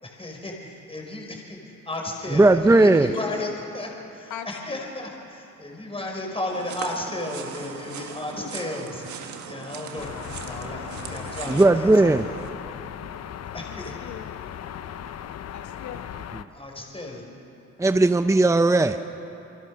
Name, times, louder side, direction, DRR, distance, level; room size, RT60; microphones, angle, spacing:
voice 1, 0.0-1.6 1.8-3.5 3.7-9.1 9.5-12.2 13.5-14.1 16.5-17.2, left 2 dB, 20° left, 0 dB, 4.9 m, -34 dB
voice 2, 2.3-3.1 11.5-12.3 16.3-16.4 17.8-19.0, right 2 dB, 10° right, 9 dB, 0.7 m, -17 dB
voice 3, 4.3-4.9 8.4-8.5 13.6-13.7 14.0-14.4 15.5-16.1 18.9-19.1, left 8 dB, 80° left, 6 dB, 1.9 m, -39 dB
sound 1, 6.5-12.5, right 7 dB, 70° right, 1.9 m, -39 dB
sound 2, 10.0-16.4, left 9 dB, 55° left, 0.9 m, -37 dB
28.0 x 23.0 x 6.4 m, 2.9 s
cardioid pair, 90°, 30 cm